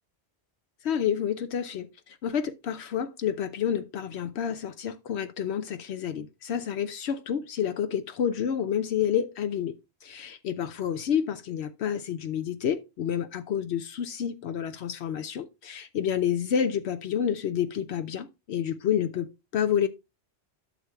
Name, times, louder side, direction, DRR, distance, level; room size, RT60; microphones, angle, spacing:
voice 1, 0.8-19.9, left 8 dB, 75° left, 0.9 m, -29 dB
12.0 x 7.2 x 2.3 m
omnidirectional pair, 1.1 m